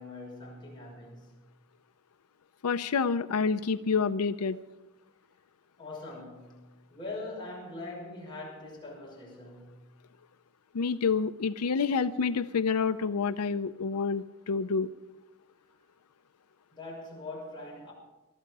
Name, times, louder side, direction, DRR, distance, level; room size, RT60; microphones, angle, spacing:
voice 1, 0.0-1.4 5.8-9.8 16.7-17.9, left 2 dB, 20° left, 6.1 m, -42 dB
voice 2, 2.6-4.6 10.7-14.9, left 5 dB, 90° left, 0.5 m, -28 dB
21.0 x 13.0 x 4.8 m
head